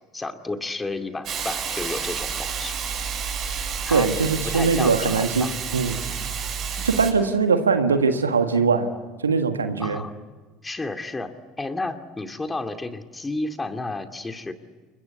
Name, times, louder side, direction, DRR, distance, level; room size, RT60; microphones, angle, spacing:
voice 1, 0.1-2.7 3.9-4.1 4.4-5.5 5.9-6.0 9.8-10.1 10.6-14.5, left 2 dB, 15° left, 7 dB, 2.4 m, -31 dB
Hiss, 1.2-7.1, right 6 dB, 45° right, 8.0 m, -30 dB
voice 2, 3.9-5.5 5.7-6.0 6.8-8.9 9.2-10.0, right 5 dB, 80° right, 8 dB, 1.6 m, -21 dB
29.5 x 22.0 x 8.3 m, 1.4 s
figure-of-eight pair, 65°, 0 cm